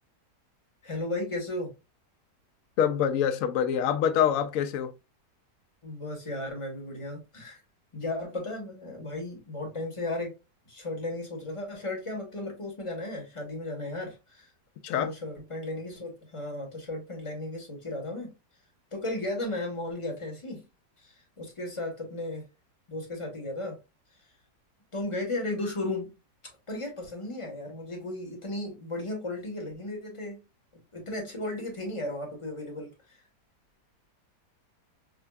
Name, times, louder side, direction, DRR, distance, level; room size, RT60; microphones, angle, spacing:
voice 1, 0.8-1.7 5.8-7.6 7.9-10.4 10.7-14.5 14.9-18.3 18.9-20.7 21.0-22.5 22.9-23.8 24.9-26.1 26.4-30.4 30.9-33.2, left 2 dB, 25° left, 0.9 m, -35 dB
voice 2, 2.8-4.9 14.8-15.1, left 9 dB, 70° left, 0.8 m, -25 dB
4.9 x 2.2 x 2.2 m
omnidirectional pair, 1.8 m